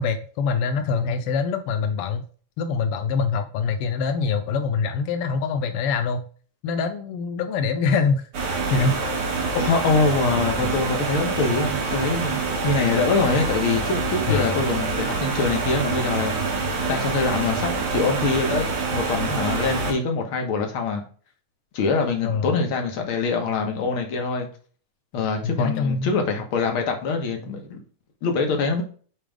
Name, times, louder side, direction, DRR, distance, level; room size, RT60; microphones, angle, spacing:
voice 1, 0.0-2.2 2.6-6.3 6.6-9.0 14.3-14.6 22.2-22.5 25.4-26.1, left 5 dB, 85° left, 7 dB, 1.2 m, -24 dB
sound 1, 8.3-19.9, right 3 dB, 75° right, 3.4 m, -26 dB
voice 2, 9.6-21.0 21.7-24.5 25.1-27.8 28.2-28.8, left 4 dB, 55° left, 3 dB, 1.8 m, -24 dB
8.9 x 3.4 x 3.5 m, 0.41 s
omnidirectional pair, 3.5 m